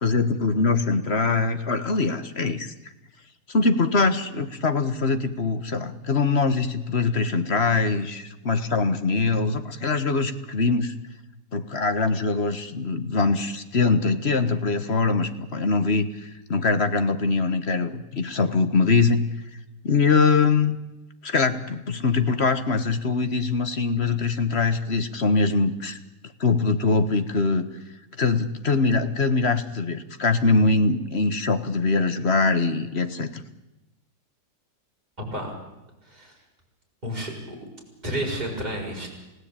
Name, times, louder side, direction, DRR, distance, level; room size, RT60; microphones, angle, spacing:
voice 1, 0.0-2.7 3.5-10.9 11.5-19.3 19.8-20.8 21.2-26.0 26.4-27.7 28.2-33.4, left 4 dB, 40° left, 10 dB, 1.5 m, -23 dB
voice 2, 37.0-37.6 38.0-39.1, right 1 dB, 25° right, -1 dB, 6.4 m, -30 dB
29.5 x 16.5 x 8.9 m, 0.99 s
omnidirectional pair, 1.8 m